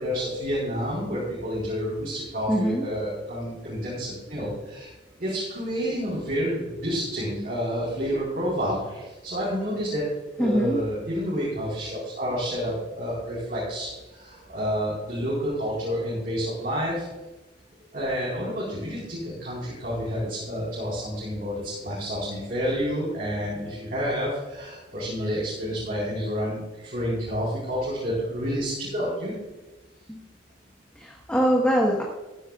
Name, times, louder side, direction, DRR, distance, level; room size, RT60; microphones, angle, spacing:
voice 1, 0.0-4.9 5.2-10.1 10.4-17.1 17.9-29.3, equal, 50° right, -6 dB, 4.5 m, -29 dB
voice 2, 2.5-2.8 10.4-10.8 30.1-30.2 30.9-32.0, equal, 5° left, -2 dB, 1.4 m, -23 dB
15.5 x 13.5 x 2.5 m, 1.1 s
head